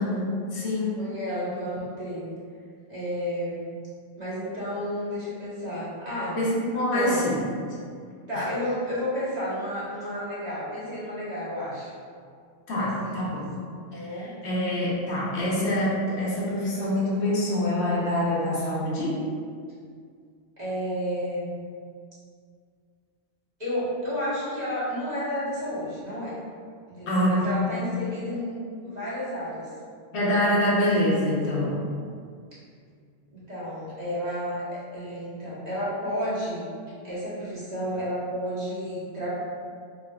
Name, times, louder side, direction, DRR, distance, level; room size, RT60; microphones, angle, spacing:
voice 1, 0.0-1.0 6.3-7.4 8.3-8.5 12.7-13.5 13.9-19.2 27.1-27.5 30.1-31.8, left 1 dB, 90° left, -6 dB, 1.1 m, -25 dB
voice 2, 1.0-2.3 2.9-3.7 4.2-6.4 6.9-7.3 8.3-11.9 12.8-13.4 13.9-14.3 20.6-21.5 23.6-26.4 26.9-28.6 28.8-29.7 33.3-36.6 37.0-39.3, equal, 40° right, -11 dB, 1.2 m, -31 dB
3.5 x 3.0 x 2.3 m, 2.1 s
omnidirectional pair, 1.1 m